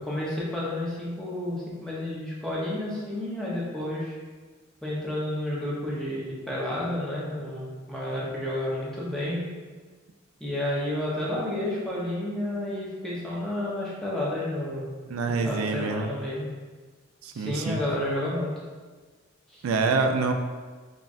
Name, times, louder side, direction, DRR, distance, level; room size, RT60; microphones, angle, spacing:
voice 1, 0.0-4.1 4.8-9.4 10.4-14.9 15.4-16.5 17.3-18.5 19.5-19.6, left 1 dB, 5° left, -7 dB, 0.8 m, -31 dB
voice 2, 15.1-16.1 17.2-17.8 19.6-20.3, right 4 dB, 90° right, 5 dB, 0.4 m, -26 dB
5.7 x 2.3 x 2.5 m, 1.4 s
head